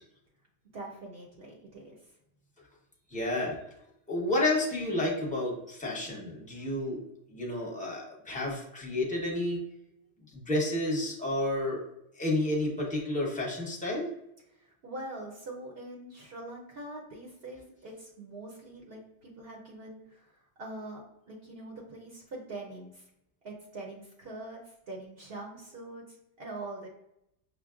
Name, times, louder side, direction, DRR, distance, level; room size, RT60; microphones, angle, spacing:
voice 1, 0.7-2.1 14.5-23.1 23.4-26.9, right 2 dB, 60° right, -2 dB, 0.9 m, -44 dB
voice 2, 3.1-3.6 4.1-7.0 7.3-9.6 10.3-11.8 12.2-14.1, left 1 dB, 10° left, -3 dB, 0.9 m, -30 dB
6.0 x 2.1 x 2.4 m, 0.80 s
omnidirectional pair, 1.2 m